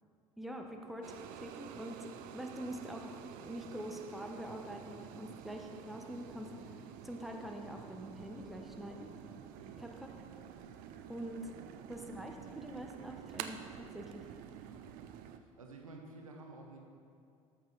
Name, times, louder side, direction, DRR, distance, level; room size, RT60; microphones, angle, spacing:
voice 1, 0.4-9.1 9.8-10.1 11.1-11.5 11.9-14.2, equal, ahead, 2 dB, 1.0 m, -45 dB
sound 1, 1.0-15.4, right 9 dB, 55° right, 0.5 m, -49 dB
voice 2, 15.3-16.8, right 2 dB, 85° right, 2 dB, 1.0 m, -52 dB
13.5 x 5.8 x 4.0 m, 2.4 s
figure-of-eight pair, 65°, 17 cm